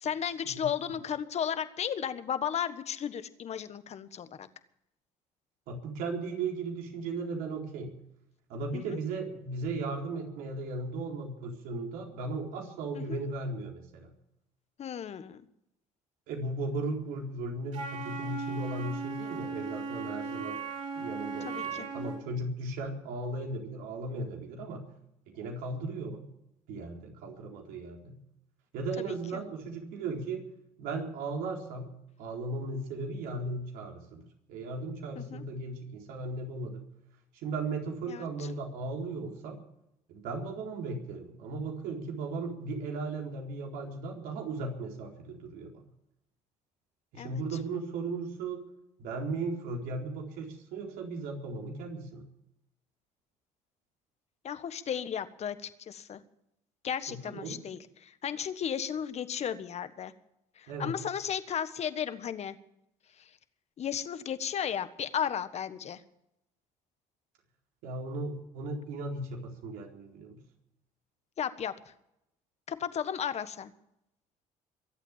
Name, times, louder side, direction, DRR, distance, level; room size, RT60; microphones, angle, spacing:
voice 1, 0.0-4.5 8.7-9.0 12.9-13.2 14.8-15.4 21.4-21.9 29.1-29.2 35.2-35.4 38.1-38.3 47.2-47.4 54.4-56.2 56.8-60.1 60.6-62.5 63.2-63.3 63.8-66.0 71.4-71.7 72.7-73.7, left 8 dB, 45° left, 12 dB, 1.4 m, -34 dB
voice 2, 5.7-7.9 8.5-14.1 16.3-20.6 20.9-24.8 25.3-26.2 26.7-28.2 28.7-30.4 30.8-31.9 32.2-36.8 37.3-39.6 40.1-45.8 47.1-48.6 49.0-52.2 57.1-57.7 60.7-61.0 67.8-70.4, right 3 dB, 75° right, 1 dB, 4.2 m, -36 dB
Wind instrument woodwind instrument, 17.7-22.2, right 4 dB, 55° right, 6.5 m, -37 dB
23.5 x 8.3 x 7.4 m, 0.81 s
supercardioid pair, 80°, 15 cm